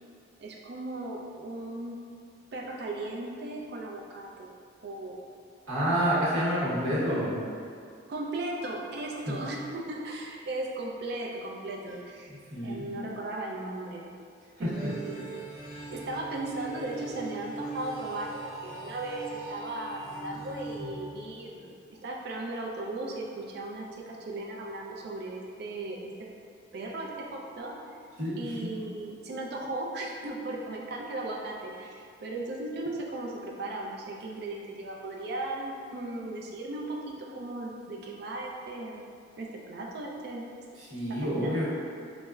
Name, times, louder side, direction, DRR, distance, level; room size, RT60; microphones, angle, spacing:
voice 1, 0.4-2.0 2.5-4.5 4.8-5.2 8.1-12.4 12.6-14.0 14.6-15.2 15.9-26.0 26.7-28.0 28.4-40.4 41.1-41.6, right 2 dB, 50° right, -1 dB, 0.3 m, -37 dB
voice 2, 5.7-7.4 9.3-9.4 12.3-12.8 14.6-14.9 20.8-20.9 28.2-28.5 40.8-41.6, equal, 80° right, -9 dB, 1.0 m, -29 dB
sound 1, 14.7-21.7, right 3 dB, 50° left, 1.1 m, -41 dB
4.2 x 2.0 x 2.3 m, 2.3 s
head